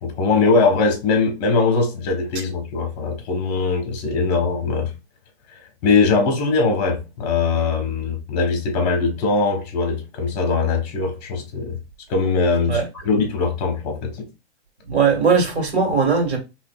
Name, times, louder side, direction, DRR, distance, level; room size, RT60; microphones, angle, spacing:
voice 1, 0.0-4.9 5.5-11.8 12.1-14.3, left 4 dB, 40° left, 1.3 m, -21 dB
voice 2, 14.8-16.4, right 5 dB, 80° right, 2.0 m, -19 dB
4.0 x 3.1 x 2.4 m
hypercardioid pair, 150°, 33 cm